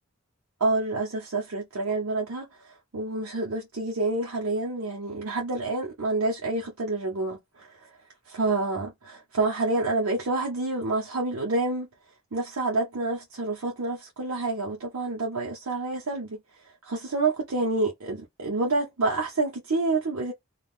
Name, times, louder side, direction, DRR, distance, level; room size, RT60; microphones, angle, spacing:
voice 1, 0.6-7.9 8.3-11.9 12.3-16.4 16.8-20.3, right 2 dB, 80° right, 0.8 m, -28 dB
2.4 x 2.4 x 3.5 m
head